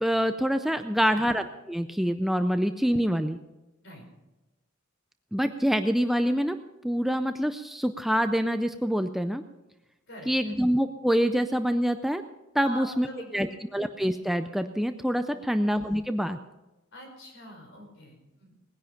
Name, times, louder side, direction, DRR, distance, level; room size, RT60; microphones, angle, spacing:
voice 1, 0.0-3.4 5.3-6.6 6.8-9.4 10.3-12.2 12.5-13.1 13.3-13.5 13.7-16.4, equal, ahead, 8 dB, 0.4 m, -26 dB
voice 2, 0.9-1.3 3.8-4.0 10.1-10.6 12.6-13.5 15.3-15.6 16.9-18.6, equal, 60° left, 2 dB, 4.7 m, -45 dB
19.0 x 10.5 x 5.7 m, 1.0 s
head